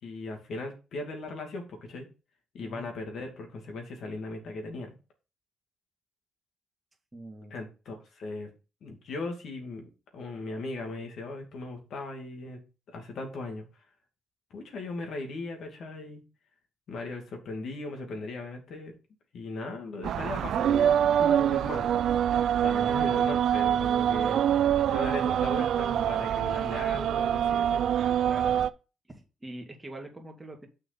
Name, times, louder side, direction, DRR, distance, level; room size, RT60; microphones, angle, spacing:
voice 1, 0.0-2.1 2.5-4.9 7.5-8.5 8.8-12.6 12.9-13.7 14.5-16.2 16.9-18.9 19.3-21.9 22.6-24.5 24.9-27.8, left 2 dB, 65° left, 3 dB, 2.4 m, -38 dB
voice 2, 7.1-7.6 22.7-22.9 28.2-28.6 29.1-30.7, right 2 dB, 15° right, 2 dB, 2.2 m, -43 dB
sound 1, 20.0-28.7, right 9 dB, 70° right, 0.4 m, -25 dB
6.7 x 5.6 x 4.2 m, 0.32 s
cardioid pair, 90°, 0 cm